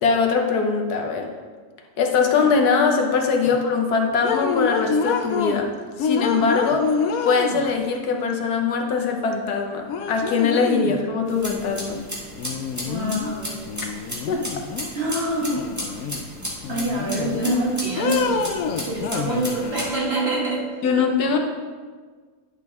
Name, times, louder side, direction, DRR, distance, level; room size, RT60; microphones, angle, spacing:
voice 1, 0.0-1.3 2.0-7.0 7.2-12.0 14.3-14.4 20.8-21.4, left 5 dB, 85° left, 3 dB, 1.5 m, -22 dB
sound 1, 4.2-5.6 6.0-7.9 9.3-9.4 9.9-11.0 12.4-13.3 13.7-14.9 15.4-16.3 16.6-17.6 18.0-19.8, left 6 dB, 70° left, 1.0 m, -27 dB
sound 2, 11.3-19.9, equal, 10° right, 1.6 m, -35 dB
voice 2, 12.8-13.6 14.9-15.6 16.7-18.5 18.8-20.7 21.2-21.3, right 2 dB, 45° right, -5 dB, 2.0 m, -25 dB
9.8 x 6.1 x 3.5 m, 1.5 s
omnidirectional pair, 1.6 m